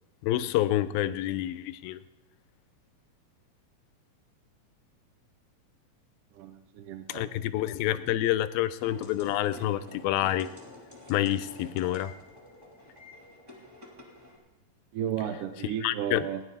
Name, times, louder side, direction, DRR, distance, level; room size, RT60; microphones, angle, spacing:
voice 1, 0.2-2.0 7.1-10.5 11.1-12.1 15.8-16.3, left 13 dB, 90° left, 14 dB, 2.4 m, -28 dB
voice 2, 6.3-7.2 14.9-16.4, right 9 dB, 75° right, 7 dB, 2.1 m, -33 dB
sound 1, 8.8-14.4, left 2 dB, 5° right, 2.9 m, -49 dB
19.5 x 11.0 x 4.1 m, 1.0 s
omnidirectional pair, 4.1 m